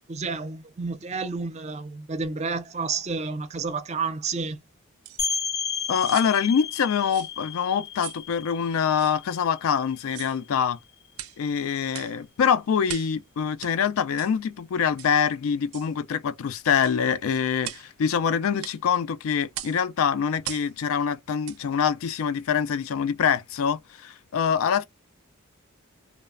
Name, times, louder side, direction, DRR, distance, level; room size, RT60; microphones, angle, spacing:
voice 1, 0.1-4.6, right 4 dB, 30° right, 0.4 m, -30 dB
sound 1, 5.0-5.2 5.9-6.3 7.1-7.3 8.0-8.2 9.0-9.1 10.0-10.4 11.1-11.4 11.9-12.2 12.9-13.2 13.6-13.7 14.2-14.3 15.0-15.2 15.7-15.9 16.8-17.0 17.6-17.9 18.6-18.8 19.5-19.8 20.4-20.7 21.4-21.6 22.1-22.2, right 13 dB, 90° right, 0.4 m, -39 dB
sound 2, 5.2-10.7, left 6 dB, 30° left, 0.6 m, -33 dB
voice 2, 5.9-10.8 11.4-24.8, left 7 dB, 75° left, 0.3 m, -25 dB
3.1 x 2.0 x 2.3 m
head